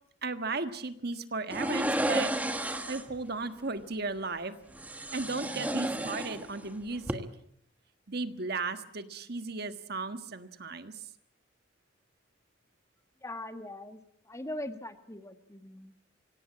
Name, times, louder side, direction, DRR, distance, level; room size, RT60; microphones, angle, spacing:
voice 1, 0.2-4.5 5.1-7.3 8.1-11.1, right 3 dB, 55° right, 9 dB, 1.5 m, -35 dB
sound 1, 1.5-3.2 4.7-6.7 7.0-7.1, right 1 dB, 10° right, 1.5 m, -32 dB
voice 2, 13.2-14.0 14.2-15.9, left 1 dB, 15° left, 8 dB, 1.5 m, -41 dB
25.0 x 17.0 x 8.5 m, 0.71 s
head